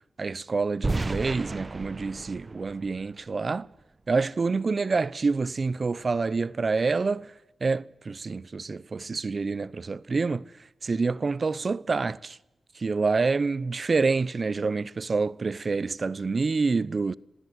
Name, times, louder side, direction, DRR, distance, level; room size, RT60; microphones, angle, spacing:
voice 1, 0.2-3.7 4.1-7.3 7.6-10.5 10.8-12.4 12.8-17.1, right 4 dB, 55° right, 0.8 m, -27 dB
sound 1, 0.8-3.8, right 2 dB, 35° right, 1.3 m, -33 dB
26.5 x 16.5 x 8.0 m
cardioid pair, 55°, 0 cm